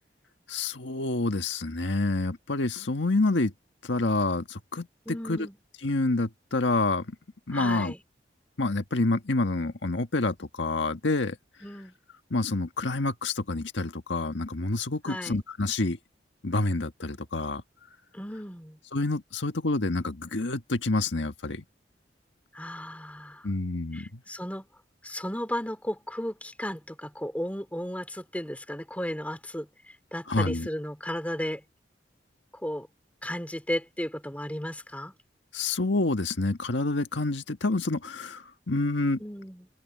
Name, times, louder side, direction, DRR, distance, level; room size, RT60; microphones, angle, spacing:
voice 1, 0.5-3.5 3.8-5.5 5.8-7.1 7.5-7.9 8.6-11.4 12.3-16.0 16.4-17.6 18.9-21.6 23.4-24.2 30.3-30.7 35.5-39.2, left 2 dB, 90° left, 1.6 m, -28 dB
voice 2, 5.1-5.6 7.5-8.0 11.6-11.9 15.1-15.4 18.1-18.8 22.5-23.4 23.9-24.7 25.0-29.7 30.1-31.6 32.6-32.9 33.2-35.1 39.2-39.7, equal, 10° left, 2.9 m, -34 dB
head